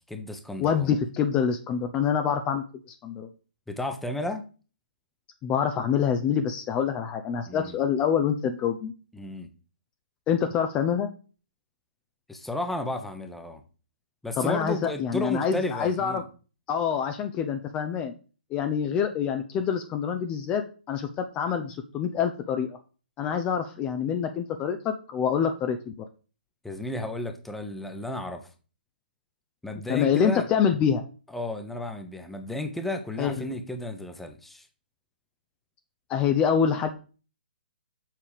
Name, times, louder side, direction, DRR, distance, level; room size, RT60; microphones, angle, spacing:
voice 1, 0.1-0.9 3.7-4.4 7.4-7.8 9.1-9.5 12.3-13.6 14.2-16.2 26.6-28.5 29.6-30.5 31.3-34.7, left 1 dB, 5° left, 7 dB, 1.2 m, -33 dB
voice 2, 0.6-3.3 5.4-8.9 10.3-11.1 14.4-16.2 16.7-18.1 18.5-20.6 20.9-22.8 23.2-25.9 29.9-31.0 33.2-33.5 36.1-36.9, left 7 dB, 20° left, 7 dB, 0.8 m, -26 dB
7.5 x 5.6 x 6.8 m, 0.37 s
figure-of-eight pair, 130°, 6 cm